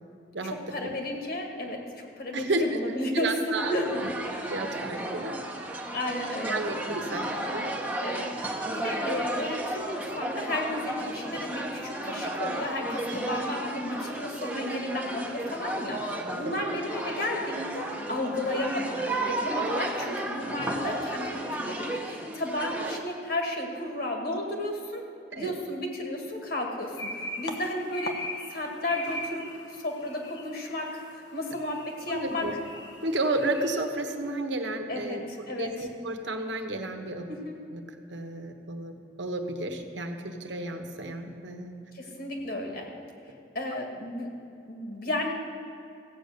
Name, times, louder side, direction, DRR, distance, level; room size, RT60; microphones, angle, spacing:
voice 1, 0.4-3.3 3.7-4.0 4.9-5.0 5.9-6.6 8.0-25.0 25.4-28.2 28.5-32.5 34.9-35.9 37.3-37.6 41.9-42.9 43.5-44.3 44.7-45.3, left 1 dB, 55° left, 2 dB, 2.0 m, -33 dB
voice 2, 2.3-2.8 3.2-4.1 4.5-5.4 5.7-5.9 6.4-7.6 16.4-16.5 25.3-25.5 32.1-32.5 33.0-35.2 35.5-37.2 37.7-37.8 38.1-41.7, right 2 dB, 80° right, 5 dB, 1.2 m, -32 dB
sound 1, 3.5-23.0, right 1 dB, 10° right, 1.0 m, -33 dB
sound 2, 26.8-33.7, left 1 dB, 75° left, 1.3 m, -40 dB
15.5 x 8.5 x 6.6 m, 2.8 s
head